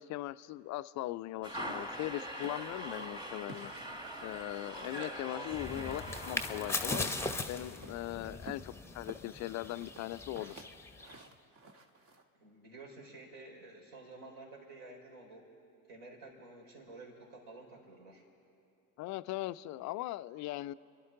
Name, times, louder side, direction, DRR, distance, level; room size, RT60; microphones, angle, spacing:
voice 1, 0.0-3.7 4.2-7.1 7.5-10.7 19.0-20.7, left 16 dB, 40° left, 14 dB, 0.4 m, -39 dB
sound 1, 1.4-7.2, equal, 10° right, 1.6 m, -43 dB
sound 2, 2.4-5.1 5.4-6.3 6.6-8.0 8.4-12.2, right 2 dB, 45° right, 1.5 m, -52 dB
sound 3, 5.5-11.3, left 3 dB, 5° left, 0.8 m, -40 dB
voice 2, 12.4-15.5 15.9-18.2, right 2 dB, 60° right, -2 dB, 4.1 m, -51 dB
30.0 x 11.5 x 3.7 m, 2.6 s
hypercardioid pair, 65°, 45 cm